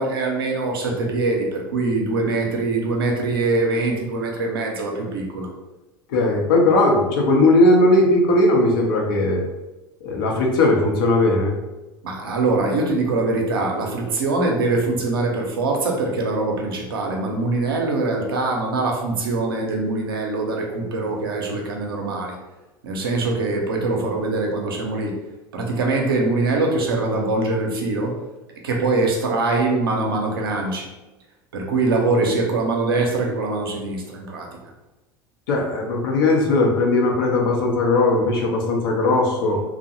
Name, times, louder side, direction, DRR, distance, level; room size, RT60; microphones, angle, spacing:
voice 1, 0.0-5.5 12.0-22.4 22.8-25.2 25.5-28.2 28.6-30.9 31.5-34.6, right 3 dB, 85° right, 1 dB, 0.6 m, -23 dB
voice 2, 6.1-9.4 10.0-11.5 35.5-39.6, left 2 dB, 75° left, 0 dB, 0.6 m, -18 dB
2.6 x 2.1 x 2.8 m, 1.1 s
hypercardioid pair, 85°, 12 cm